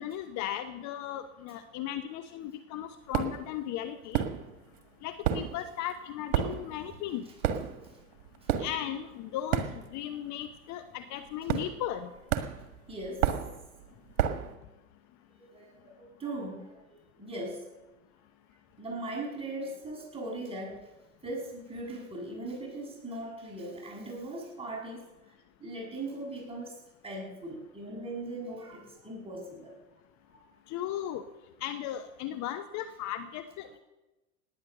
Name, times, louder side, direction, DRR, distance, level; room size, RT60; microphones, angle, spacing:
voice 1, 0.0-4.2 5.0-7.3 8.6-12.1 30.7-31.2 31.6-33.8, left 11 dB, 40° left, 9 dB, 1.0 m, -36 dB
sound 1, 3.1-3.5 4.1-4.8 5.0-10.2 10.4-10.7 11.5-12.0 12.3-14.6, right 10 dB, 60° right, 1.7 m, -31 dB
voice 2, 12.9-13.3 15.4-17.7 18.8-20.9 21.2-25.4 25.6-26.8 27.0-29.8 30.3-30.5, right 2 dB, 15° right, -2 dB, 7.0 m, -40 dB
18.0 x 9.9 x 6.7 m, 1.1 s
hypercardioid pair, 85°, 43 cm